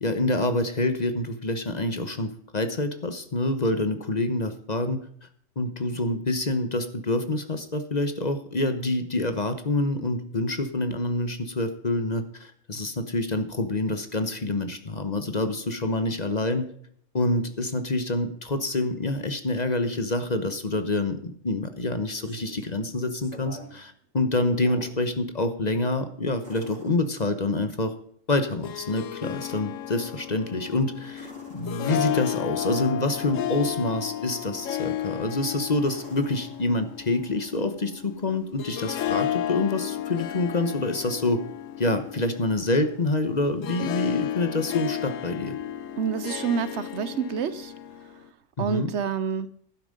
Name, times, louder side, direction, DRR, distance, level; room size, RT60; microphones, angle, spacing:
voice 1, 0.0-5.0 5.6-16.7 17.1-27.9 28.3-41.4 41.8-45.5 48.6-48.9, left 2 dB, 35° left, 1.1 m, -27 dB
sound 1, 22.1-22.7 23.2-23.8 24.2-25.0 26.4-27.7 31.1-32.4 34.9-35.3 35.8-37.2 39.3-39.4, right 1 dB, 45° right, 3.2 m, -47 dB
Harp, 28.4-48.2, left 11 dB, 90° left, 1.1 m, -33 dB
voice 2, 46.0-47.7 48.6-49.5, right 6 dB, 65° right, 0.9 m, -28 dB
11.5 x 10.0 x 5.3 m
omnidirectional pair, 1.3 m